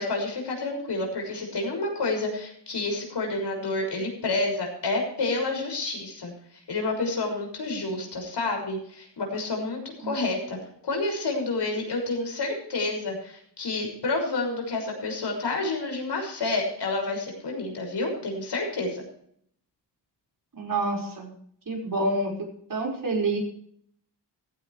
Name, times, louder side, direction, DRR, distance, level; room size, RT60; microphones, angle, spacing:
voice 1, 0.0-6.3 6.7-10.6 10.8-19.0, left 2 dB, 70° left, 2 dB, 6.4 m, -29 dB
voice 2, 20.5-21.3 21.7-23.4, right 2 dB, 50° right, 0 dB, 5.3 m, -28 dB
15.5 x 15.5 x 3.3 m, 0.64 s
wide cardioid pair, 120°, 42 cm